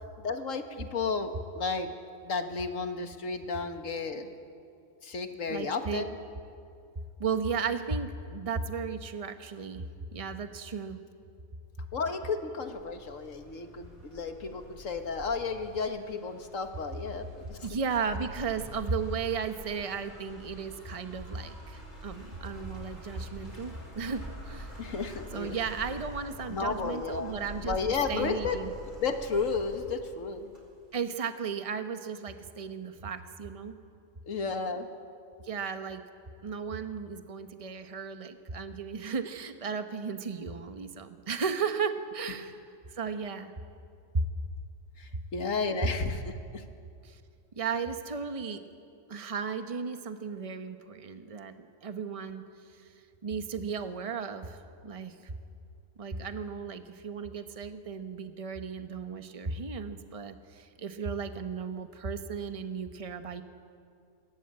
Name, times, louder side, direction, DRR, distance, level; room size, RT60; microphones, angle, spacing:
voice 1, 0.2-1.9 2.2-4.3 5.0-6.1 11.9-17.6 24.8-25.6 26.5-28.6 29.0-30.5 34.3-34.9 45.0-46.6, left 4 dB, 85° left, 7 dB, 1.8 m, -33 dB
voice 2, 5.5-6.0 7.2-9.8 10.1-11.0 17.6-24.8 25.3-27.8 28.1-28.7 30.9-33.8 35.4-36.0 36.4-42.6 42.9-43.5 44.1-44.3 47.0-47.2 47.5-48.6 49.1-52.4 53.2-54.6 54.8-55.3 56.0-63.4, right 5 dB, 30° right, 8 dB, 1.0 m, -35 dB
sound 1, 12.7-30.9, equal, 35° left, 5.0 m, -46 dB
22.5 x 17.5 x 8.8 m, 2.4 s
omnidirectional pair, 1.3 m